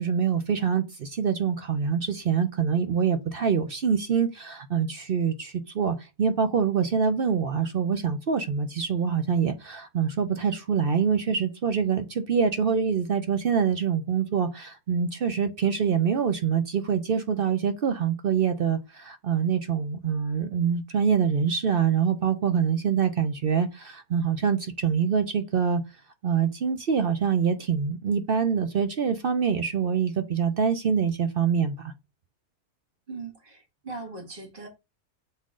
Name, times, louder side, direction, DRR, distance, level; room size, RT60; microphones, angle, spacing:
voice 1, 0.0-25.8 26.2-31.9, right 7 dB, 55° right, 0.6 m, -25 dB
voice 2, 33.1-34.7, right 3 dB, 35° right, 2.2 m, -39 dB
7.3 x 3.7 x 3.7 m
omnidirectional pair, 1.6 m